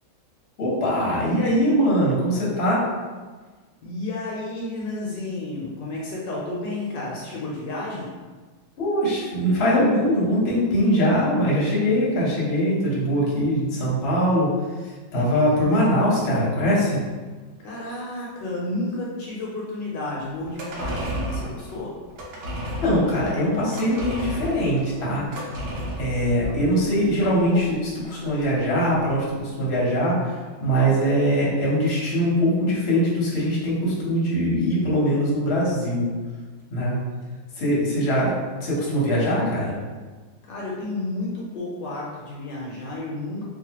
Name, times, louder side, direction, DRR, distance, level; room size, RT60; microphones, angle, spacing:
voice 1, 0.6-2.8 8.8-14.5 15.1-17.0 22.8-25.2 26.0-36.1 36.7-36.9 37.6-39.8, equal, 45° left, -6 dB, 0.9 m, -22 dB
voice 2, 3.8-8.1 17.6-21.9 40.4-43.4, left 2 dB, 75° left, -4 dB, 1.2 m, -31 dB
sound 1, 20.4-29.0 29.3-29.4, equal, 80° right, 1.3 m, -33 dB
3.2 x 2.4 x 2.8 m, 1.4 s
omnidirectional pair, 2.0 m